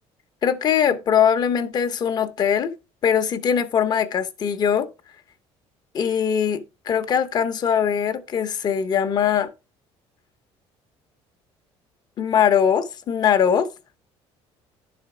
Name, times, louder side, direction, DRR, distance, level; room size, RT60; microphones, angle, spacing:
voice 1, 0.4-2.7 3.0-4.9 5.9-9.5 12.2-13.7, left 8 dB, 35° left, 0.9 m, -21 dB
11.0 x 4.3 x 4.9 m
cardioid pair, 160°, 11 cm